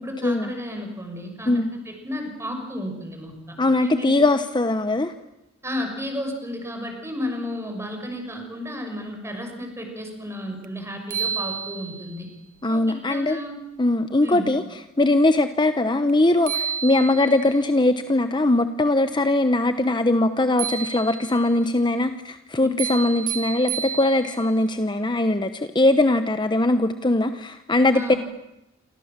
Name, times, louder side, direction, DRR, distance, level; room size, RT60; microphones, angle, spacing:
voice 1, 0.0-3.3 3.8-4.1 5.6-12.3 12.7-13.5 14.2-14.5 22.6-22.7 27.9-28.2, left 1 dB, 15° right, 4 dB, 6.2 m, -33 dB
voice 2, 3.6-5.1 12.6-13.4 13.8-14.6 15.0-28.1, left 2 dB, 25° left, 9 dB, 1.0 m, -21 dB
sound 1, 10.6-10.7 11.1-12.2 16.1-16.2 16.5-17.5 20.6-21.5 22.8-24.5, right 8 dB, 40° right, 1.2 m, -30 dB
28.5 x 25.0 x 7.4 m, 0.93 s
head